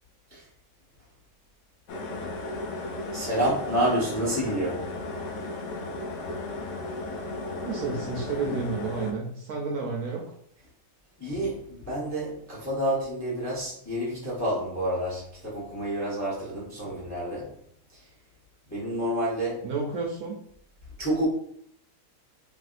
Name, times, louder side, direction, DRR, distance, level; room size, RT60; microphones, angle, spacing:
sound 1, 1.9-9.1, left 2 dB, 70° left, 0.8 m, -35 dB
voice 1, 3.1-4.9 11.2-17.5 17.9-18.0 18.7-19.7 21.0-21.3, right 1 dB, 15° left, 0.6 m, -29 dB
voice 2, 7.6-10.2 19.6-20.4, right 4 dB, 70° right, 1.0 m, -31 dB
3.3 x 2.6 x 2.4 m
omnidirectional pair, 1.9 m